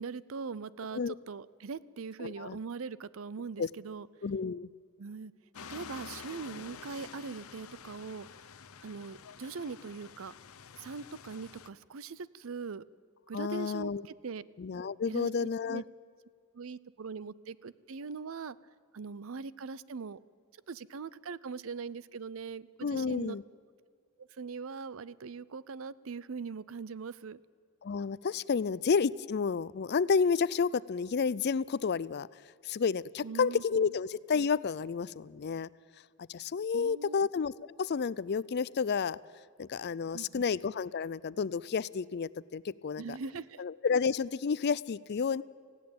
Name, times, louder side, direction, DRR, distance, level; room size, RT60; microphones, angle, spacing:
voice 1, 0.0-4.1 5.0-5.3 5.7-8.3 8.8-10.3 10.8-12.8 13.3-14.4 15.1-15.8 16.5-18.6 18.9-20.2 20.7-23.4 24.2-27.4 33.2-33.9 36.7-37.2 40.1-40.4 43.0-43.6, right 5 dB, 65° right, 19 dB, 0.5 m, -41 dB
voice 2, 2.2-2.6 3.6-3.7 4.2-4.7 13.3-14.0 14.6-15.8 22.8-23.4 27.8-32.3 32.6-35.7 36.3-37.5 37.8-39.2 39.6-43.2 43.6-45.4, left 5 dB, 50° left, 20 dB, 0.4 m, -30 dB
sound 1, 5.5-11.7, left 6 dB, 75° left, 0.8 m, -49 dB
19.5 x 15.5 x 8.6 m, 2.1 s
head